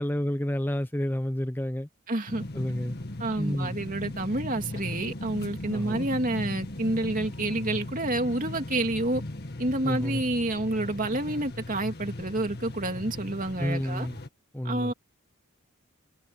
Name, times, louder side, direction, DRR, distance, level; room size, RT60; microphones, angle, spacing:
voice 1, 0.0-1.9 2.5-2.9 3.4-3.8 5.7-6.1 9.8-10.2 13.6-14.2 14.5-14.9, left 1 dB, 10° left, 0.6 m, -30 dB
voice 2, 2.1-2.4 3.2-9.2 9.6-14.1 14.6-14.9, right 1 dB, 40° right, 2.7 m, -29 dB
sound 1, 2.3-14.3, left 1 dB, 50° left, 1.9 m, -38 dB
head